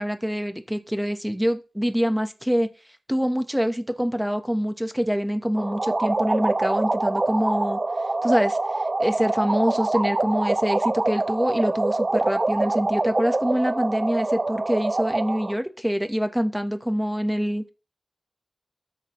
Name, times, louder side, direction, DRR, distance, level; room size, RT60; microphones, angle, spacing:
voice 1, 0.0-2.7 3.1-7.8 8.2-8.6 9.0-17.7, equal, 5° right, 7 dB, 1.3 m, -25 dB
sound 1, 5.6-15.5, right 2 dB, 45° right, 0.4 m, -25 dB
13.0 x 6.5 x 3.2 m, 0.32 s
wide cardioid pair, 50°, 0 cm